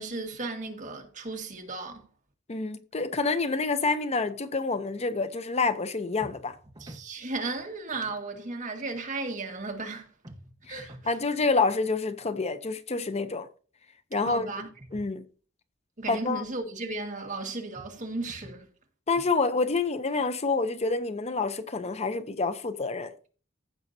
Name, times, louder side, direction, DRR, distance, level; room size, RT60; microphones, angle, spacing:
voice 1, 0.0-2.1 6.8-10.1 10.7-11.1 14.2-14.7 16.0-18.7, right 3 dB, 40° right, 1.7 m, -35 dB
voice 2, 2.5-6.6 10.7-10.8 11.1-13.5 14.1-14.5 14.9-15.2 16.1-16.4 19.1-23.1, left 3 dB, 35° left, 0.6 m, -28 dB
sound 1, 6.2-7.1 10.2-11.1 14.2-15.1 17.7-18.7, right 1 dB, 25° right, 1.2 m, -48 dB
15.5 x 6.3 x 2.7 m
head